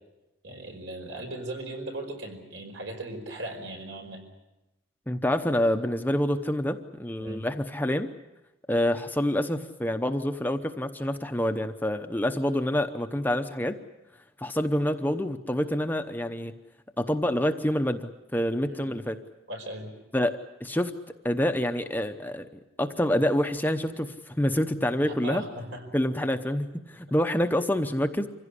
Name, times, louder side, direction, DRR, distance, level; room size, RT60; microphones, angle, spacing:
voice 1, 0.4-4.2 7.2-7.5 18.6-19.0 19.5-19.9 25.0-25.8, right 1 dB, 75° right, 3 dB, 5.2 m, -38 dB
voice 2, 5.1-8.1 8.7-13.8 14.4-16.5 17.0-19.2 20.1-20.3 20.6-20.9 21.2-22.5 22.8-25.4 25.9-28.3, left 1 dB, 10° left, 7 dB, 0.8 m, -27 dB
25.0 x 16.5 x 9.9 m, 0.99 s
head